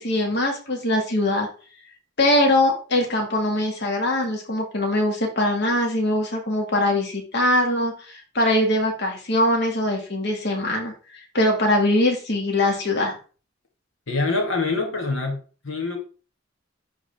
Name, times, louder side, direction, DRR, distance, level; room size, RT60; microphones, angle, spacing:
voice 1, 0.0-1.5 2.2-10.9 11.3-13.1, left 1 dB, 60° left, 1.8 m, -22 dB
voice 2, 14.1-16.0, left 3 dB, 85° left, 1.6 m, -25 dB
11.0 x 3.7 x 3.4 m
head